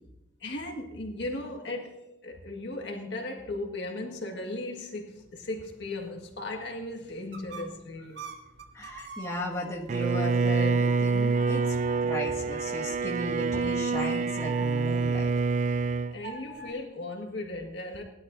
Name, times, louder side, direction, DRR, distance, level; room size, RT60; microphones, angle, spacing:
voice 1, 0.4-2.0 2.2-8.3 16.1-18.0, left 2 dB, 70° left, 1.7 m, -37 dB
sound 1, 5.1-10.1 10.6-16.7, right 5 dB, 70° right, 1.6 m, -46 dB
voice 2, 8.7-15.3, equal, 15° left, 1.7 m, -36 dB
Bowed string instrument, 9.9-16.2, right 4 dB, 40° right, 0.3 m, -26 dB
19.5 x 12.0 x 2.6 m
head